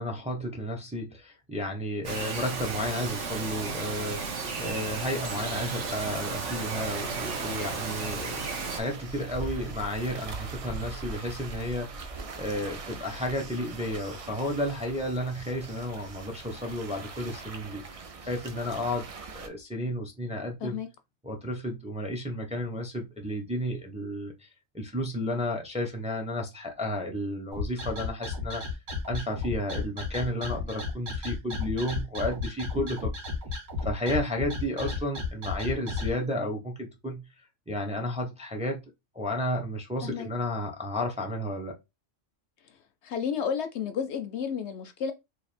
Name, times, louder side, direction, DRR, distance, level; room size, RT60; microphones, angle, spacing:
voice 1, 0.0-12.0 12.3-20.8 21.2-24.5 24.7-28.6 29.0-33.1 33.8-37.2 37.7-38.8 39.1-41.8, left 1 dB, 5° right, 0.6 m, -32 dB
Bird vocalization bird call bird song, 2.0-8.8, right 4 dB, 70° right, 1.2 m, -34 dB
sound 1, 5.8-19.5, right 3 dB, 50° right, 0.4 m, -41 dB
sound 2, 27.5-36.1, left 4 dB, 90° right, 1.8 m, -33 dB
voice 2, 43.0-45.1, left 7 dB, 70° left, 0.8 m, -31 dB
3.3 x 2.5 x 4.1 m
omnidirectional pair, 1.3 m